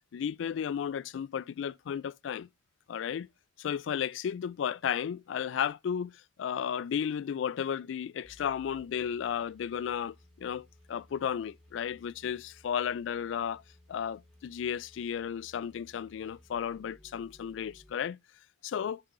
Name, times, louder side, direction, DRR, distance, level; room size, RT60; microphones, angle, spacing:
voice 1, 0.1-2.5 2.9-3.3 3.6-6.1 6.4-13.6 13.9-18.2 18.6-19.0, left 8 dB, 75° left, 0.3 m, -34 dB
sound 1, 8.2-17.9, left 1 dB, ahead, 2.9 m, -60 dB
8.4 x 5.7 x 2.5 m
head